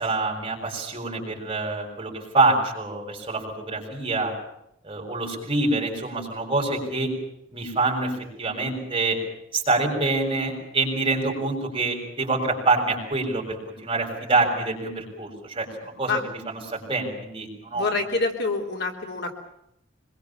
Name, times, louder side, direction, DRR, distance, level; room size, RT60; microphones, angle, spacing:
voice 1, 0.0-4.3 4.8-7.1 7.5-9.2 9.5-13.6 13.8-17.9, right 3 dB, 25° right, 0 dB, 7.2 m, -26 dB
voice 2, 17.7-19.3, left 3 dB, 55° left, 2 dB, 3.5 m, -26 dB
26.0 x 22.5 x 7.3 m, 0.78 s
head